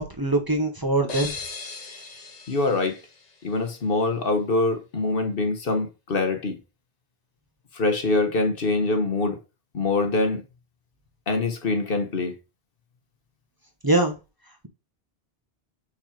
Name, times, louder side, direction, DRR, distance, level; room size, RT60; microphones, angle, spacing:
voice 1, 0.0-1.3 13.8-14.2, right 2 dB, 20° right, 1.0 m, -23 dB
sound 1, 1.1-3.9, left 4 dB, 45° left, 1.0 m, -38 dB
voice 2, 2.5-3.0 3.4-6.6 7.7-9.4 9.7-10.4 11.3-12.3, left 3 dB, 65° left, 1.3 m, -24 dB
5.8 x 4.0 x 4.9 m
omnidirectional pair, 1.0 m